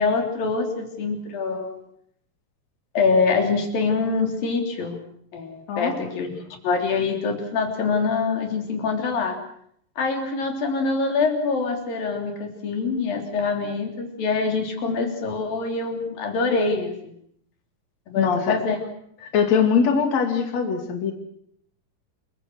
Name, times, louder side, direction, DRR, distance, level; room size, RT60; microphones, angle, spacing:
voice 1, 0.0-1.7 3.0-5.0 5.3-6.4 6.6-9.4 10.0-17.1 18.1-18.8 19.2-19.3, left 4 dB, 90° left, 3 dB, 5.4 m, -24 dB
voice 2, 18.2-18.6 19.3-21.1, left 6 dB, 55° left, 4 dB, 3.8 m, -21 dB
28.0 x 22.5 x 6.4 m, 0.68 s
omnidirectional pair, 3.9 m